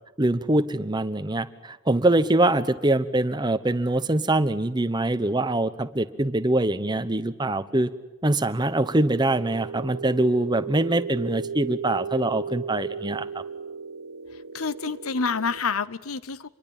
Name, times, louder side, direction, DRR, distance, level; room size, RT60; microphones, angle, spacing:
voice 1, 0.2-7.9 8.2-13.4, right 1 dB, 20° right, 12 dB, 0.9 m, -24 dB
sound 1, 8.8-15.6, right 6 dB, 70° right, 1.3 m, -36 dB
voice 2, 14.5-16.5, left 5 dB, 80° left, 17 dB, 0.9 m, -28 dB
26.5 x 22.5 x 9.0 m, 1.1 s
head